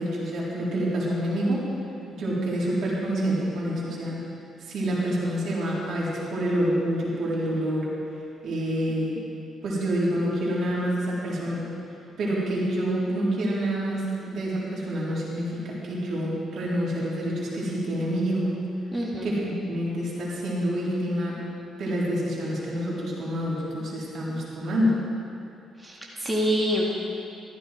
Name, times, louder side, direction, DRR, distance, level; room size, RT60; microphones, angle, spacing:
voice 1, 0.0-1.7 2.1-4.2 4.6-7.9 8.4-9.2 9.6-11.7 12.2-18.5 19.2-21.4 21.8-25.0, equal, 65° right, -6 dB, 4.2 m, -27 dB
voice 2, 18.9-19.3 25.8-26.9, equal, 15° right, -4 dB, 2.2 m, -26 dB
14.5 x 14.0 x 4.7 m, 2.6 s
cardioid pair, 90°, 0 cm